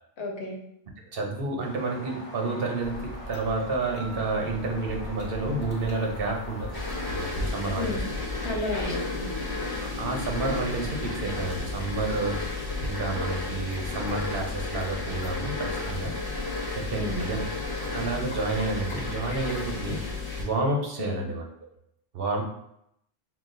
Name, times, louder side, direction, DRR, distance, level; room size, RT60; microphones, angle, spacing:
voice 1, 0.2-0.6 7.8-8.1 8.3-9.3 16.9-17.3 21.0-21.3, left 2 dB, 85° left, 0 dB, 1.1 m, -32 dB
voice 2, 1.1-6.7 7.1-8.2 9.8-16.2 16.7-17.4 17.7-20.0 20.4-21.4 22.1-22.4, right 3 dB, 65° right, 1 dB, 1.0 m, -30 dB
sound 1, 1.6-7.2, equal, 35° right, 1.4 m, -44 dB
sound 2, 2.8-20.0, left 1 dB, 55° left, 0.9 m, -42 dB
sound 3, 6.7-20.5, left 3 dB, 25° left, 0.6 m, -33 dB
5.9 x 2.2 x 2.5 m, 0.77 s
omnidirectional pair, 1.0 m